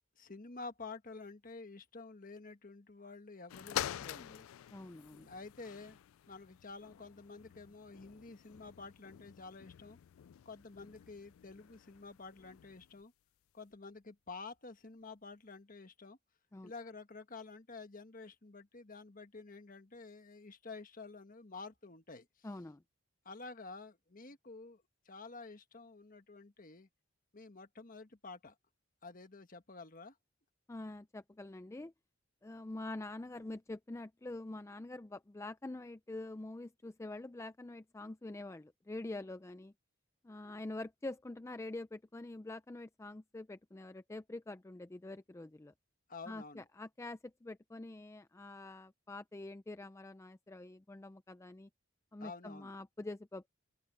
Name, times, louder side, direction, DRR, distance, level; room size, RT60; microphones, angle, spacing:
voice 1, 0.2-4.5 5.3-10.0 10.4-13.1 13.5-16.2 16.6-22.5 23.2-26.9 27.3-28.5 29.0-30.2 46.1-46.7 52.2-52.7, left 3 dB, 40° left, 1.3 m, -50 dB
sound 1, 3.5-13.0 13.7-13.8, left 11 dB, 90° left, 0.3 m, -47 dB
voice 2, 4.7-5.3 16.5-16.7 22.4-22.8 30.7-31.9 32.4-39.7 40.2-45.7 46.3-51.7 52.1-53.5, left 2 dB, 15° left, 0.4 m, -46 dB
head